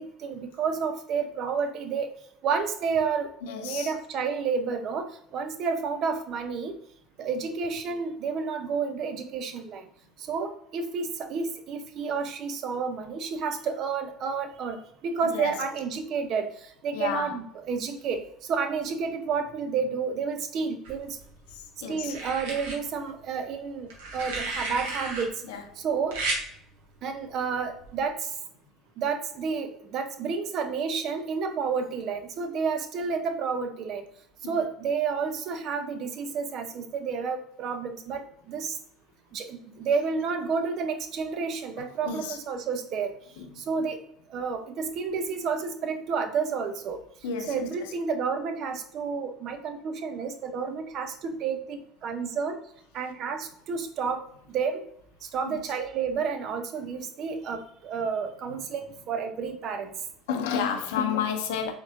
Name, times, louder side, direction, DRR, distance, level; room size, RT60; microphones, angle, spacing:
voice 1, 0.0-2.1 2.4-3.3 3.6-6.7 7.2-9.9 10.3-14.8 15.0-16.5 16.8-18.2 18.5-21.2 21.9-25.3 25.8-26.2 27.0-28.3 29.0-34.0 34.4-38.8 39.3-43.1 43.6-44.0 44.3-47.0 47.5-52.6 52.9-54.2 54.5-54.8 55.3-59.9, right 5 dB, 50° right, 0.6 m, -30 dB
voice 2, 3.4-3.9 15.2-15.5 16.9-17.4 21.5-22.2 25.5-25.6 34.4-34.6 42.0-42.4 43.4-43.6 47.2-47.7 55.5-55.6 60.3-61.7, left 7 dB, 70° left, 0.6 m, -31 dB
sound 1, 20.8-21.5 22.1-22.8 23.9-25.2 26.1-26.4 27.8-28.0, right 2 dB, 70° right, 1.1 m, -33 dB
4.3 x 3.6 x 2.6 m
hypercardioid pair, 65°, 0 cm